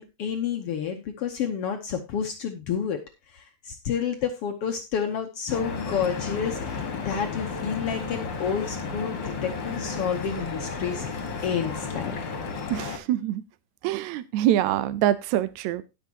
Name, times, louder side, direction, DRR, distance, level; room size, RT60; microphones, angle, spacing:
voice 1, 0.0-3.0 3.3-11.1 11.4-12.1, left 7 dB, 70° left, 5 dB, 1.5 m, -30 dB
Stream / Boat Water vehicle, 5.5-13.0, left 4 dB, 40° left, 2.0 m, -33 dB
voice 2, 12.7-13.4 13.8-15.8, right 12 dB, 75° right, 14 dB, 1.8 m, -25 dB
18.0 x 6.2 x 2.8 m, 0.25 s
omnidirectional pair, 3.7 m